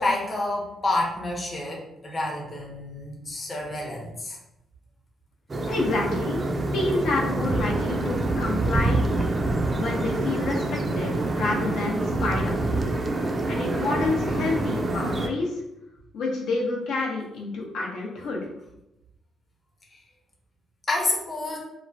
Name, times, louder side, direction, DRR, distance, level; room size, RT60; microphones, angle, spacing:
voice 1, 0.0-4.4 20.9-21.6, left 2 dB, 30° left, -1 dB, 0.7 m, -28 dB
sound 1, 5.5-15.3, right 2 dB, 30° right, 0.4 m, -26 dB
voice 2, 5.7-6.4 6.7-9.0 9.8-10.6 10.9-12.8 13.5-15.6 16.1-18.4, left 3 dB, 80° left, -3 dB, 0.7 m, -28 dB
3.0 x 2.1 x 2.6 m, 0.87 s
cardioid pair, 90°, 0 cm